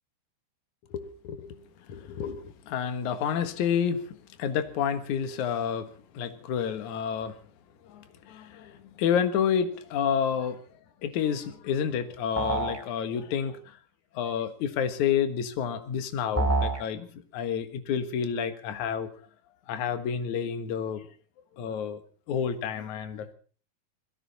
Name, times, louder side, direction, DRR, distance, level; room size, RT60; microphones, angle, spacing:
voice 1, 0.9-1.6 1.9-7.4 7.9-10.6 11.0-13.8 14.1-19.1 19.7-21.1 21.6-22.0 22.3-23.3, left 8 dB, 60° left, 10 dB, 2.5 m, -29 dB
sound 1, 12.4-12.8 16.4-16.8, right 2 dB, 5° right, 2.8 m, -26 dB
21.0 x 16.0 x 4.1 m, 0.40 s
omnidirectional pair, 4.6 m